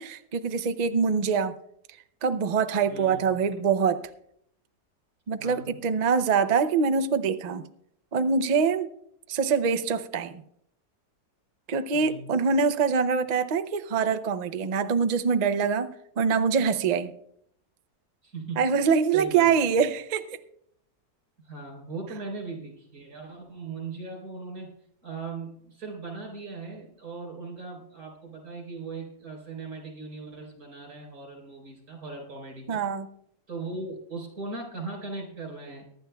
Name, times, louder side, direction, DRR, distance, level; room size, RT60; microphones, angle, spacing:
voice 1, 0.0-1.5 2.2-4.0 5.3-7.6 8.1-8.9 9.3-10.4 11.7-17.1 18.6-20.4 32.7-33.1, right 5 dB, 80° right, 10 dB, 0.3 m, -24 dB
voice 2, 2.9-3.4 5.4-5.8 11.9-12.3 18.2-18.6 19.1-19.5 21.4-24.7 25.0-32.8 33.5-35.8, right 3 dB, 65° right, -1 dB, 4.4 m, -39 dB
23.5 x 11.5 x 2.3 m, 0.71 s
omnidirectional pair, 1.7 m